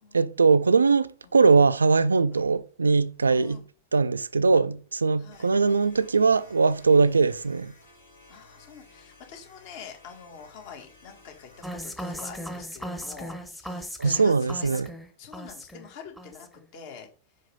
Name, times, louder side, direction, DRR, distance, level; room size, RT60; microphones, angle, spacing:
voice 1, 0.1-3.6 3.9-7.7 14.0-14.9, right 4 dB, 75° right, 0.3 m, -21 dB
voice 2, 3.3-3.6 5.2-5.5 7.0-7.1 8.3-14.8 15.2-17.1, left 7 dB, 50° left, 1.7 m, -46 dB
sound 1, 5.3-11.8, left 2 dB, 80° left, 2.4 m, -55 dB
sound 2, 11.6-15.9 16.2-16.6, equal, 5° left, 0.9 m, -37 dB
5.2 x 5.0 x 5.4 m
figure-of-eight pair, 90°, 0 cm